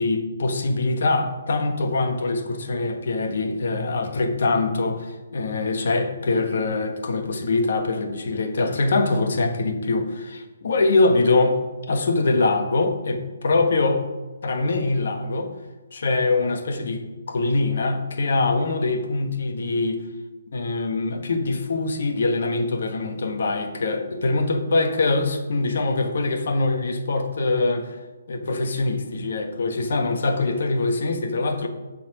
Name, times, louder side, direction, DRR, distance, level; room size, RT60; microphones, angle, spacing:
voice 1, 0.0-11.6 11.9-14.0 14.4-15.5 15.9-20.0 20.5-28.0 28.3-31.7, left 3 dB, 60° left, 5 dB, 1.2 m, -23 dB
7.2 x 4.2 x 6.0 m, 1.2 s
figure-of-eight pair, 140°, 0 cm